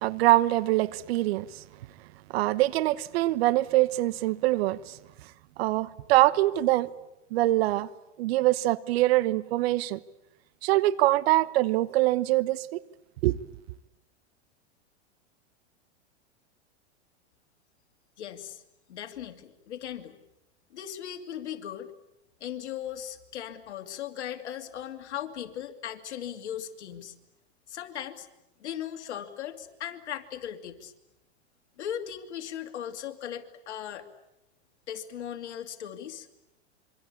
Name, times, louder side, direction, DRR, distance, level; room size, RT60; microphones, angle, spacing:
voice 1, 0.0-1.6 2.3-5.0 5.6-6.9 7.3-7.9 8.2-10.0 10.6-12.8 13.2-13.4, right 17 dB, 60° right, 1.2 m, -24 dB
voice 2, 18.2-18.6 18.9-20.2 20.7-21.9 22.4-27.1 27.7-28.3 28.6-30.9 31.8-34.1 34.9-36.3, left 10 dB, 75° left, 2.7 m, -38 dB
26.5 x 24.0 x 8.5 m
hypercardioid pair, 115°, 34 cm